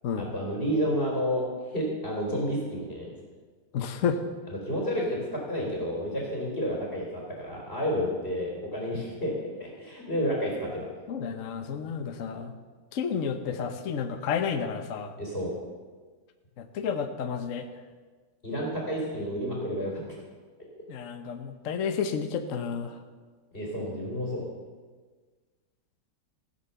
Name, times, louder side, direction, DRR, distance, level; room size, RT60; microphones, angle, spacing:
voice 1, 0.1-3.1 4.5-10.9 15.2-15.5 18.4-20.2 23.5-24.4, equal, 30° left, -3 dB, 3.5 m, -30 dB
voice 2, 3.7-4.2 11.1-12.5 12.9-15.1 16.6-17.7 20.9-22.9, left 6 dB, 55° left, 7 dB, 1.1 m, -31 dB
16.0 x 8.1 x 6.8 m, 1.4 s
omnidirectional pair, 2.0 m